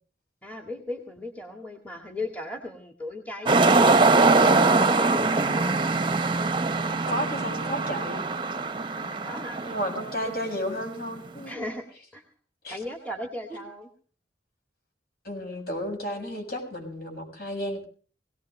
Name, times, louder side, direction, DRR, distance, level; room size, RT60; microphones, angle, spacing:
voice 1, 0.4-5.8 9.0-9.6 10.2-10.3 11.5-11.8 12.1-12.2 12.7-13.9, left 1 dB, 10° left, 4 dB, 1.9 m, -37 dB
sound 1, 3.5-10.5 11.2-11.4, right 3 dB, 25° right, 0.8 m, -22 dB
voice 2, 7.1-8.2 9.6-11.5 12.6-12.8 15.2-17.8, equal, 55° left, 3 dB, 6.8 m, -32 dB
21.5 x 18.0 x 3.3 m, 0.40 s
head